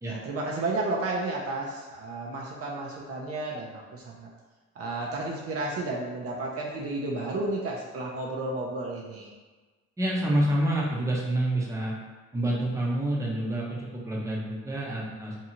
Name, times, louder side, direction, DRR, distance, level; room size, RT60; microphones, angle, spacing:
voice 1, 0.0-4.3 4.8-9.3, right 2 dB, 50° right, -2 dB, 0.6 m, -32 dB
voice 2, 10.0-11.9 12.3-15.4, right 1 dB, 10° right, -4 dB, 0.6 m, -28 dB
2.7 x 2.3 x 2.8 m, 1.3 s
cardioid pair, 90°, 30 cm